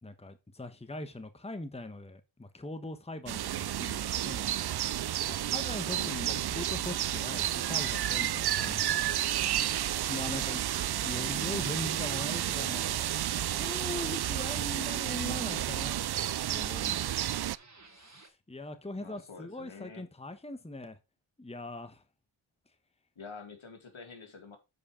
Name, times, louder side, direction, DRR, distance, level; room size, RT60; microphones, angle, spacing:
voice 1, 0.0-4.5 5.3-9.2 10.1-10.6 11.0-13.0 13.4-16.0 16.5-17.4 18.0-21.0 21.4-22.0, left 2 dB, 10° left, 1.2 m, -41 dB
sound 1, 3.3-17.6, right 12 dB, 55° right, 0.5 m, -31 dB
voice 2, 5.9-6.5 19.0-20.0 23.2-24.6, left 5 dB, 70° left, 2.4 m, -47 dB
sound 2, 6.3-18.3, right 3 dB, 35° right, 2.0 m, -54 dB
8.4 x 4.8 x 4.9 m
cardioid pair, 45°, 49 cm